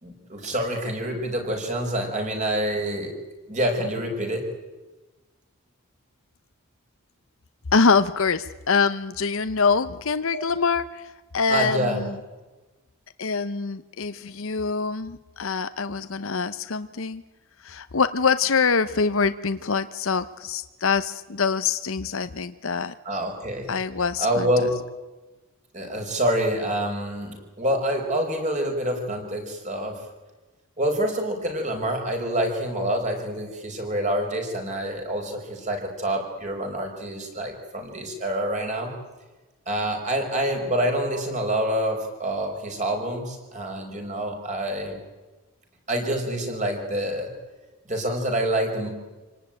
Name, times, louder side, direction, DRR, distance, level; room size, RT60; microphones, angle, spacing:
voice 1, 0.0-3.2 3.5-4.5 10.3-10.4 11.5-12.0 23.0-23.7 24.2-24.8 25.7-30.0 30.8-38.9 39.7-45.0 45.9-47.3 47.9-48.9, right 1 dB, 35° right, 3 dB, 5.1 m, -27 dB
voice 2, 7.7-11.0 11.3-12.1 13.2-17.2 17.6-22.9 23.7-24.5, left 5 dB, 65° left, 11 dB, 0.8 m, -24 dB
27.5 x 18.5 x 9.1 m, 1.2 s
head